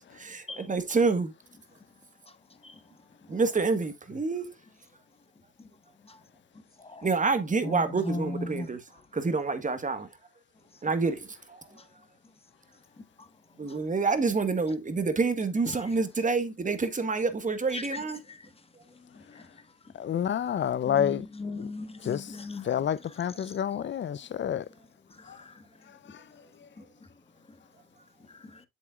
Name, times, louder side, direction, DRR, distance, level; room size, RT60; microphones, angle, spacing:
voice 1, 0.2-1.3 3.3-4.5 7.0-8.8 9.1-10.1 10.8-11.6 13.6-18.2, right 4 dB, 25° right, 1.5 m, -27 dB
voice 2, 6.8-7.1 7.6-8.7 11.7-11.8 13.2-13.3 15.7-15.8 17.7-18.5 19.1-19.5 19.8-19.9 20.8-23.6 25.2-25.6 26.8-26.9 27.5-27.6 28.3-28.6, left 2 dB, 20° left, 1.5 m, -39 dB
voice 3, 20.0-21.2 22.1-22.2 22.7-24.6, left 9 dB, 35° left, 0.6 m, -28 dB
7.7 x 7.2 x 2.4 m
supercardioid pair, 85°, 31 cm